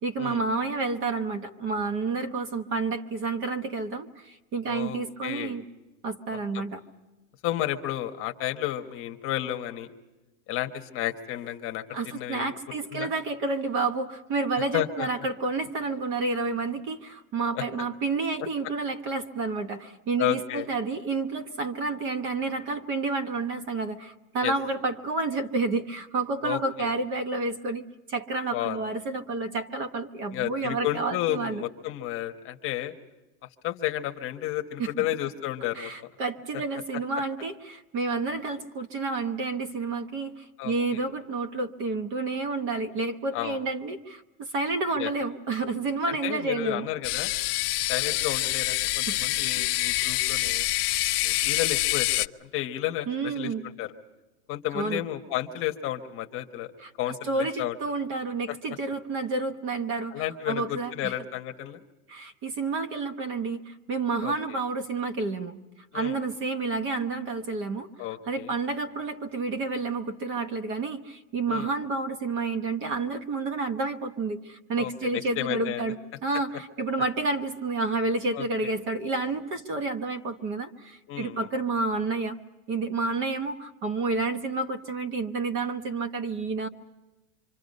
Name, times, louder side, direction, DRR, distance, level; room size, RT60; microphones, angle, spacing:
voice 1, 0.0-5.6 6.0-6.8 11.9-31.6 34.8-34.9 35.7-46.9 49.1-49.2 53.1-53.7 54.7-55.0 56.8-60.1 60.5-61.1 62.1-65.6 65.9-67.9 68.3-82.4 82.7-86.7, right 3 dB, 25° right, 10 dB, 1.0 m, -30 dB
voice 2, 4.6-5.6 6.5-6.7 7.4-9.9 10.5-12.5 12.9-13.1 14.7-15.1 17.5-17.6 20.2-20.7 24.4-24.5 26.4-26.9 28.5-28.8 30.3-32.9 33.6-35.9 40.6-41.0 43.3-43.6 45.0-45.1 46.1-47.3 47.9-50.7 51.2-53.9 54.5-56.7 57.0-57.8 60.1-61.8 64.2-64.6 65.9-66.2 68.0-68.5 71.5-71.7 74.8-75.9 78.3-78.7 81.1-81.5, left 13 dB, 30° left, 6 dB, 1.2 m, -32 dB
sound 1, 47.0-52.3, left 19 dB, 80° left, 0.7 m, -26 dB
27.0 x 25.5 x 5.4 m, 1.1 s
supercardioid pair, 170°, 46 cm